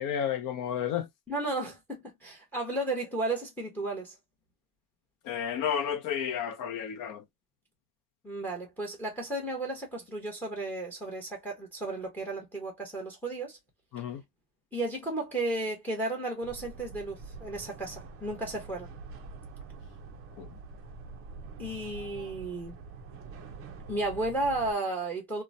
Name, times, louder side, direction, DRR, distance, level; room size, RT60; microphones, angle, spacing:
voice 1, 0.0-1.1 5.2-7.2 13.9-14.2 20.4-20.5, left 8 dB, 40° left, 0.7 m, -32 dB
voice 2, 1.3-4.1 8.2-13.6 14.7-18.9 21.6-22.8 23.9-25.4, right 2 dB, 5° left, 0.9 m, -33 dB
sound 1, 16.4-24.7, right 4 dB, 30° right, 0.5 m, -45 dB
2.9 x 2.2 x 2.5 m
cardioid pair, 145°, 47 cm